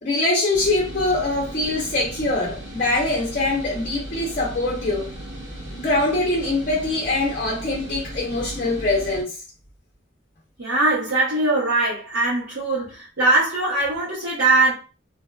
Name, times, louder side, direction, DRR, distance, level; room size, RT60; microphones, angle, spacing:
voice 1, 0.0-5.1 5.7-9.4, left 2 dB, 45° left, 0.5 m, -23 dB
sound 1, 0.5-9.2, right 1 dB, 40° right, 1.0 m, -36 dB
voice 2, 10.6-14.7, right 2 dB, 85° right, 1.0 m, -21 dB
2.5 x 2.2 x 2.3 m
head